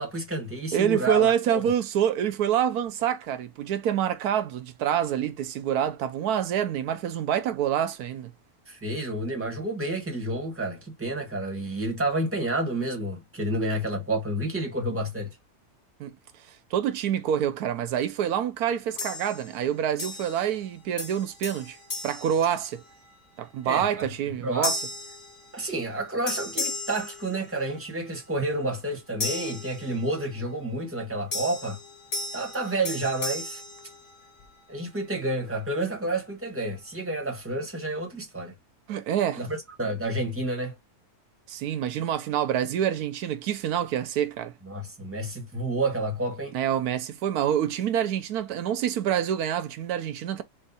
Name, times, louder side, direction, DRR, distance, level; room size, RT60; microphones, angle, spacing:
voice 1, 0.0-1.6 8.7-15.4 23.6-24.1 24.4-24.8 25.5-31.8 32.3-33.6 34.7-38.5 39.4-40.7 44.6-46.6, right 1 dB, 10° right, 1.3 m, -30 dB
voice 2, 0.7-8.3 16.0-16.1 16.7-21.8 22.0-22.8 23.4-24.8 38.9-39.4 41.5-44.5 46.5-50.4, right 9 dB, 90° right, 1.2 m, -26 dB
sound 1, 19.0-19.6 20.0-20.7 21.0-23.1 23.6-23.9 24.6-26.0 26.3-27.9 29.2-30.4 31.3-34.6, left 3 dB, 40° left, 1.8 m, -36 dB
4.4 x 2.6 x 4.0 m
omnidirectional pair, 1.6 m